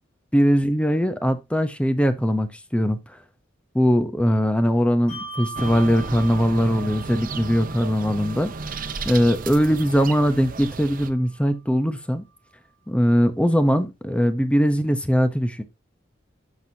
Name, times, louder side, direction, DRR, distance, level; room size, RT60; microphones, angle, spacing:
voice 1, 0.3-3.2 3.7-8.5 9.0-12.2 12.9-15.6, equal, 5° left, 0.8 m, -21 dB
Bell, 5.1-11.9, right 4 dB, 50° left, 3.6 m, -42 dB
sound 1, 5.6-11.1, right 4 dB, 45° right, 0.8 m, -33 dB
11.5 x 6.2 x 2.8 m
head